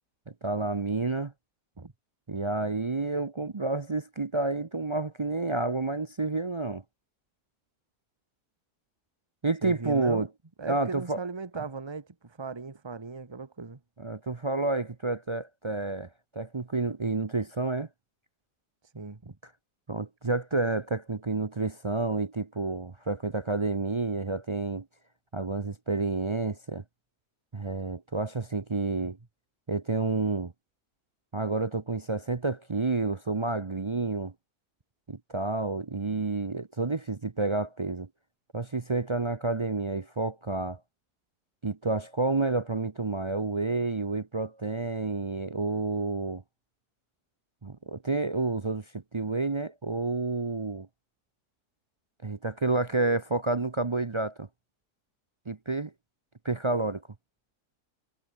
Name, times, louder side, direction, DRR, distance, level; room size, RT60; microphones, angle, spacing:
voice 1, 0.3-1.3 2.3-6.8 9.4-10.3 10.7-11.2 14.0-17.9 19.9-24.9 25.3-26.8 27.5-29.2 29.7-30.5 31.3-34.3 35.1-38.1 38.5-40.8 41.6-46.4 47.6-50.9 52.2-54.5 55.5-55.9 56.4-57.0, right 3 dB, 45° right, 0.3 m, -29 dB
voice 2, 9.6-10.3 10.6-13.8 18.9-19.4, right 4 dB, 15° right, 1.4 m, -38 dB
omnidirectional pair, 1.8 m